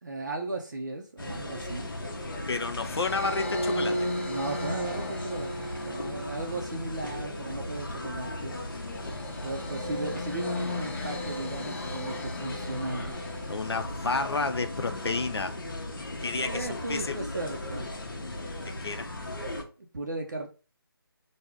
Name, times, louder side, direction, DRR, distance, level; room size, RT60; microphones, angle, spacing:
voice 1, 0.0-1.9 4.2-8.6 9.4-13.2 16.3-17.9 19.9-20.5, right 2 dB, 45° right, 0.5 m, -36 dB
sound 1, 1.2-19.6, left 1 dB, 55° left, 0.8 m, -37 dB
voice 2, 2.5-4.1 13.5-15.6 16.2-17.2 18.6-19.1, left 3 dB, 85° left, 0.5 m, -31 dB
sound 2, 2.8-14.2, left 1 dB, 30° left, 0.5 m, -36 dB
3.4 x 2.1 x 3.4 m
figure-of-eight pair, 170°, 13 cm